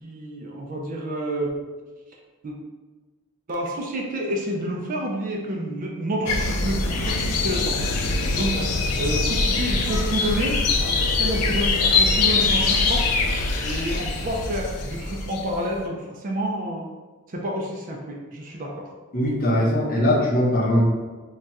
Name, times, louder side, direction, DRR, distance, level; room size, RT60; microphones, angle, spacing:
voice 1, 0.0-1.5 2.4-2.6 3.5-7.8 8.3-8.6 9.0-13.0 13.6-16.9 17.3-18.9, right 1 dB, 35° right, 0 dB, 0.4 m, -29 dB
sound 1, 6.3-15.7, left 3 dB, 90° left, 0.4 m, -23 dB
voice 2, 19.1-20.8, left 1 dB, 40° left, -4 dB, 0.6 m, -20 dB
2.3 x 2.3 x 4.0 m, 1.3 s
head